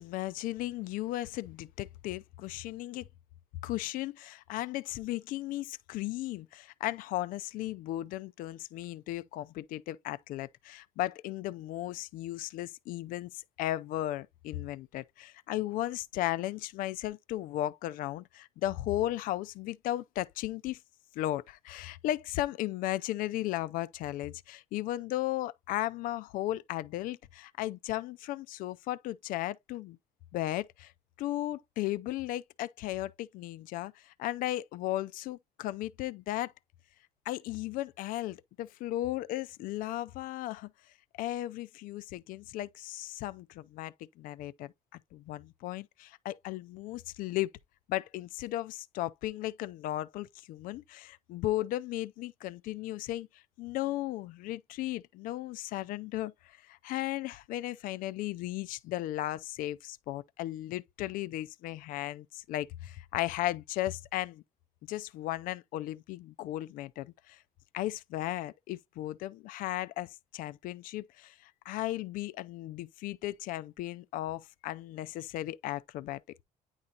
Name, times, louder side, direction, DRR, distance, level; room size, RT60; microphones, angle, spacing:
voice 1, 0.0-3.1 3.6-20.8 21.1-30.0 30.3-30.9 31.2-36.5 37.3-40.7 41.2-47.5 47.9-64.4 64.8-67.4 67.7-76.2, left 15 dB, 80° left, 0.5 m, -36 dB
9.7 x 4.0 x 2.8 m
cardioid pair, 155°, 14 cm